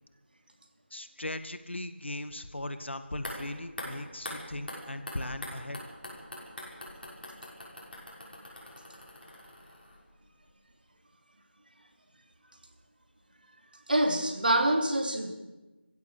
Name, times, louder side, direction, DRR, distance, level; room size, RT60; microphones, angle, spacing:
voice 1, 0.9-5.8, left 1 dB, 75° left, 10 dB, 2.0 m, -38 dB
sound 1, 3.1-10.2 10.5-10.6, left 1 dB, 50° left, 6.2 m, -44 dB
voice 2, 13.9-15.3, right 1 dB, 50° right, 5 dB, 2.8 m, -25 dB
22.5 x 15.5 x 7.3 m, 1.2 s
figure-of-eight pair, 180°, 6 cm